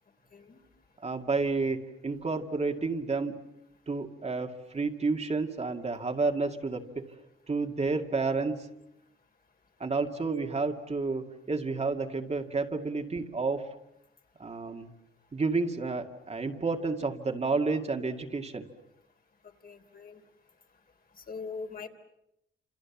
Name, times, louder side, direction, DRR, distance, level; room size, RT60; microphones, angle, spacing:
voice 1, 1.0-3.4 3.9-7.1 7.5-8.7 9.8-13.7 14.4-14.9 15.3-18.7, right 3 dB, 30° right, 4 dB, 2.1 m, -30 dB
voice 2, 19.6-20.2 21.2-21.9, left 4 dB, 45° left, 4 dB, 3.3 m, -41 dB
29.0 x 27.0 x 7.3 m, 0.83 s
cardioid pair, 115°, 21 cm